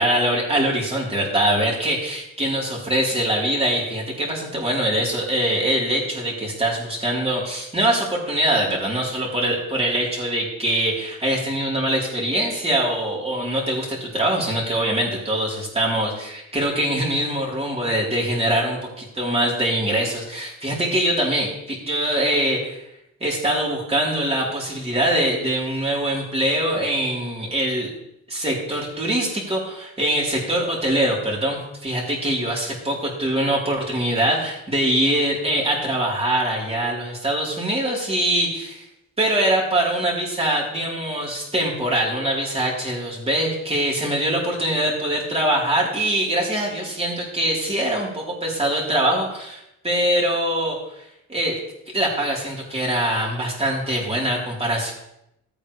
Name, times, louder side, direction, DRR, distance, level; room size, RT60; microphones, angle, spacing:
voice 1, 0.0-22.8 23.2-27.9 28.3-38.9 39.2-50.8 51.3-51.6 51.9-54.9, right 1 dB, 20° right, -4 dB, 4.2 m, -23 dB
14.0 x 8.9 x 3.5 m, 0.82 s
cardioid pair, 90°, 30 cm